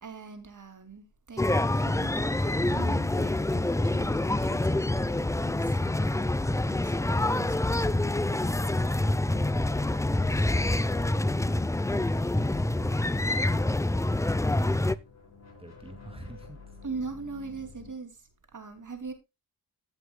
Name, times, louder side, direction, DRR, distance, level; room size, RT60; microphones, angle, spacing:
voice 1, 0.0-5.8 6.7-8.6 16.8-19.1, right 4 dB, 50° right, 2.7 m, -42 dB
sound 1, 1.4-15.0, left 2 dB, 10° left, 0.5 m, -26 dB
voice 2, 10.1-11.0 11.9-14.4 15.6-16.8, right 2 dB, 15° right, 2.2 m, -47 dB
sound 2, 14.5-17.9, left 5 dB, 40° left, 4.4 m, -51 dB
15.0 x 7.9 x 2.2 m
cardioid pair, 70°, 40 cm